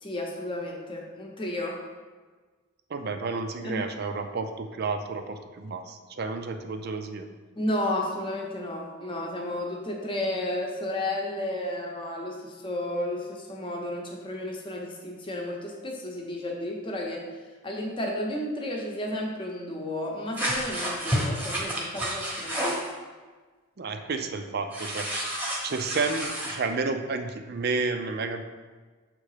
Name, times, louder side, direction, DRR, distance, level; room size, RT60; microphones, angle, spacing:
voice 1, 0.0-1.8 3.6-3.9 7.5-17.3 17.6-22.7, left 1 dB, 25° left, -1 dB, 0.8 m, -32 dB
voice 2, 2.9-7.3 23.8-25.2 25.6-28.4, right 4 dB, 45° right, 7 dB, 0.4 m, -31 dB
sound 1, 20.4-22.9 24.7-26.6, equal, 10° right, 1.0 m, -30 dB
6.5 x 3.8 x 4.9 m, 1.4 s
head